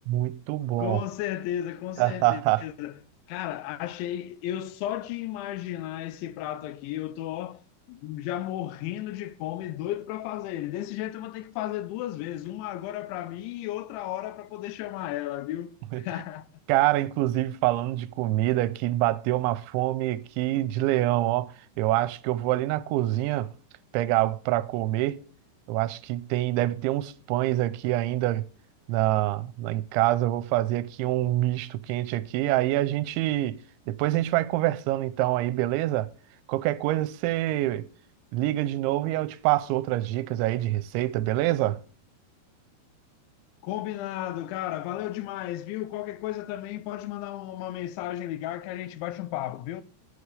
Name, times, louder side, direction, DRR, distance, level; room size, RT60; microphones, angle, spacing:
voice 1, 0.1-1.0 2.0-2.6 15.9-16.0 16.7-21.5 21.8-23.5 23.9-25.2 25.7-28.5 28.9-33.6 33.9-36.1 36.5-37.9 38.3-41.8, right 15 dB, 90° right, 3.0 m, -26 dB
voice 2, 0.8-3.0 3.3-7.6 7.9-16.5 43.6-49.8, left 13 dB, 85° left, 3.1 m, -34 dB
11.0 x 9.6 x 3.4 m
omnidirectional pair, 5.3 m